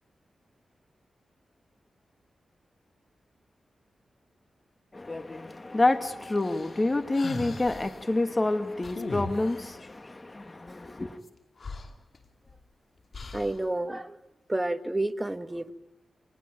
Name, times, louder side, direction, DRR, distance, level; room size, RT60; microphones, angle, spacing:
voice 1, 4.9-11.2, left 2 dB, 30° left, 2.1 m, -28 dB
sound 1, 6.4-8.0 8.8-9.8 11.3-11.4 11.6-12.6 13.1-13.7, left 3 dB, 55° left, 2.6 m, -39 dB
voice 2, 13.3-14.1 14.5-15.7, right 1 dB, 15° right, 1.8 m, -30 dB
28.0 x 20.0 x 9.0 m
cardioid pair, 55°, 0 cm